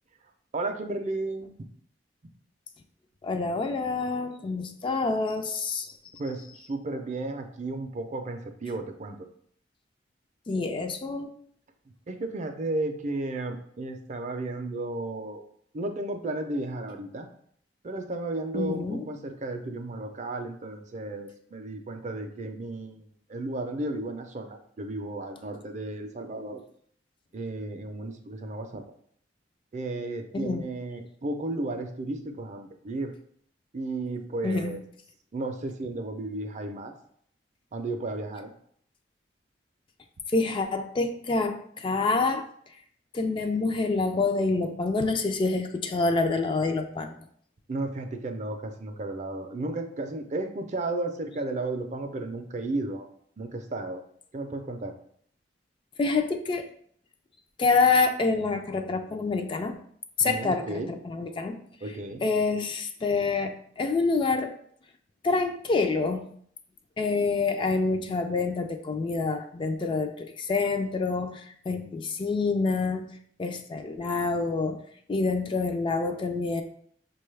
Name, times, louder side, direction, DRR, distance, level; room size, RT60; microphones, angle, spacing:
voice 1, 0.5-1.5 6.2-9.3 12.1-15.4 15.7-17.3 17.8-26.6 27.3-28.9 29.7-33.1 33.7-34.8 35.3-36.9 37.7-38.5 47.7-53.1 53.4-54.0 54.3-54.9 60.2-60.9 61.8-62.2 71.7-71.9, right 2 dB, 40° right, 6 dB, 0.4 m, -33 dB
voice 2, 3.2-5.9 10.5-11.3 18.5-19.0 30.3-30.6 34.4-34.7 40.3-42.4 43.1-47.2 56.0-56.6 57.6-59.8 60.2-61.6 62.2-64.5 65.2-66.3 67.0-71.4 71.7-73.1 73.4-74.8 75.1-76.6, left 3 dB, 30° left, 6 dB, 0.3 m, -27 dB
5.9 x 2.3 x 3.2 m, 0.63 s
head